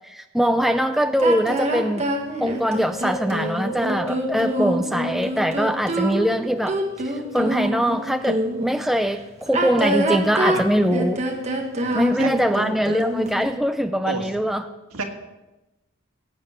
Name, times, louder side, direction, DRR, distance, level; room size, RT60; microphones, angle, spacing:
voice 1, 0.0-2.0 2.4-6.8 7.3-11.2 11.9-14.6, equal, ahead, 8 dB, 0.4 m, -22 dB
sound 1, 1.2-8.7 9.4-13.4, right 1 dB, 30° right, 1.5 m, -25 dB
Wind, 2.6-6.2 6.7-8.0 8.5-8.6, equal, 15° left, 0.9 m, -36 dB
voice 2, 11.8-12.3 14.0-14.3 14.9-15.0, right 4 dB, 85° right, 4 dB, 1.7 m, -30 dB
17.0 x 7.9 x 5.8 m, 1.0 s
head